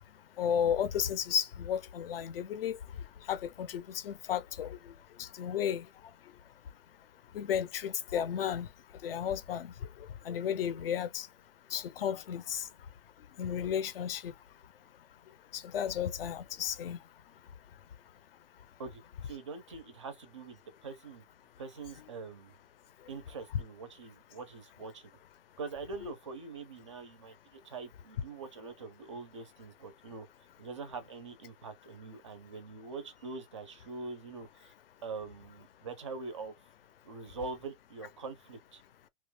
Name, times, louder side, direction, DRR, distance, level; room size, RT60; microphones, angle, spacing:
voice 1, 0.4-2.8 3.3-4.8 5.2-5.9 7.3-8.7 9.0-9.7 10.2-11.3 11.7-12.7 13.4-14.3 15.5-17.0 26.0-26.1, left 9 dB, 50° left, 0.6 m, -33 dB
voice 2, 18.8-21.2 21.6-22.5 23.1-25.1 25.6-30.3 30.6-34.7 35.0-36.5 37.0-38.8, right 4 dB, 25° right, 0.4 m, -44 dB
2.9 x 2.2 x 3.2 m
hypercardioid pair, 165°, 37 cm